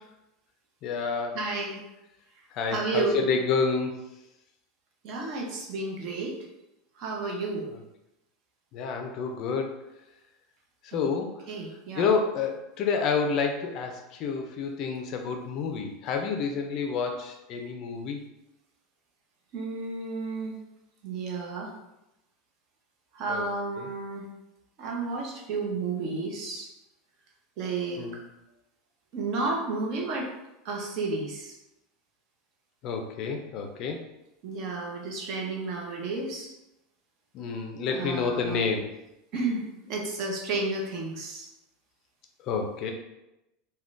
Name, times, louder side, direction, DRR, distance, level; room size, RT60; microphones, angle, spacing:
voice 1, 0.8-1.4 2.5-4.0 8.7-9.8 10.9-11.5 12.0-18.2 23.3-23.5 23.8-23.9 28.0-28.2 32.8-34.0 37.3-38.9 42.4-42.9, left 5 dB, 45° left, 4 dB, 0.4 m, -29 dB
voice 2, 1.3-1.8 2.7-3.3 5.0-6.4 7.0-7.7 10.9-11.1 11.5-12.1 19.5-20.6 21.0-21.7 23.1-24.3 24.8-26.7 27.6-28.0 29.1-30.3 30.6-31.5 34.4-36.5 37.9-38.6 39.3-41.5, right 3 dB, 50° right, 0 dB, 0.7 m, -32 dB
3.5 x 2.2 x 2.5 m, 0.93 s
supercardioid pair, 145°, 0 cm